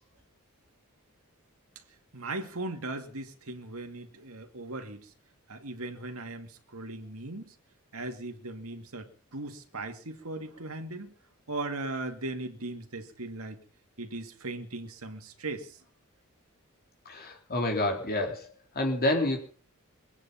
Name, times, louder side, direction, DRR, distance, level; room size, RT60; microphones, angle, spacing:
voice 1, 2.1-5.1 5.5-7.5 7.9-11.1 11.5-13.6 14.0-15.8, right 2 dB, 75° right, 2.3 m, -38 dB
voice 2, 17.1-19.4, left 1 dB, 45° left, 3.8 m, -29 dB
23.5 x 9.7 x 5.7 m
head